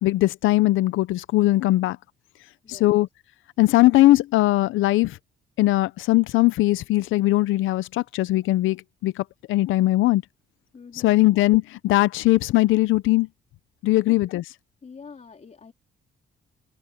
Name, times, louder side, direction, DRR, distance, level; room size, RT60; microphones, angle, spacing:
voice 1, 0.0-2.0 2.7-3.1 3.6-5.1 5.6-9.1 9.5-10.2 11.0-13.3 13.8-14.4, left 17 dB, 85° left, 0.6 m, -20 dB
voice 2, 2.6-3.0 10.7-11.3 14.1-14.2 14.8-15.7, left 5 dB, 35° left, 3.4 m, -44 dB
open air
cardioid pair, 90°, 20 cm